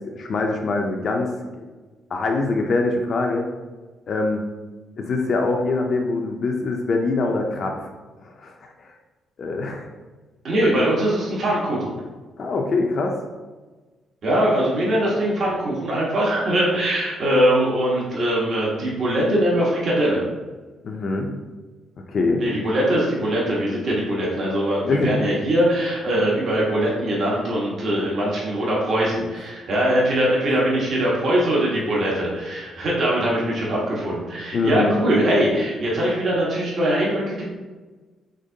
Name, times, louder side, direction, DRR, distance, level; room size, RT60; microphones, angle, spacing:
voice 1, 0.1-1.3 2.1-3.5 4.1-4.4 5.0-7.7 8.2-8.5 8.8-8.9 9.4-9.9 10.6-10.7 12.4-13.2 20.8-21.3 22.1-22.4 24.8-25.2 34.5-35.0, left 3 dB, 50° left, 2 dB, 0.5 m, -23 dB
voice 2, 10.4-11.9 14.2-20.2 22.4-37.4, right 1 dB, 55° right, -4 dB, 1.3 m, -22 dB
5.1 x 3.5 x 2.7 m, 1.3 s
cardioid pair, 90°, 0 cm